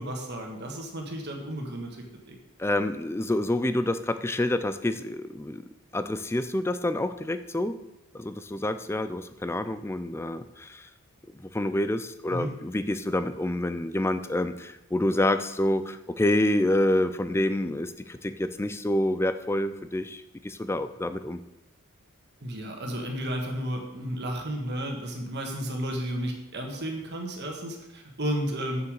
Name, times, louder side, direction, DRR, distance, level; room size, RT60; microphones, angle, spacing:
voice 1, 0.0-2.3 12.3-12.5 22.4-28.8, equal, 50° right, 2 dB, 1.7 m, -33 dB
voice 2, 2.6-5.6 5.9-7.8 8.1-10.9 11.4-21.4, left 1 dB, 10° left, 11 dB, 0.4 m, -27 dB
7.0 x 6.8 x 6.5 m, 0.96 s
head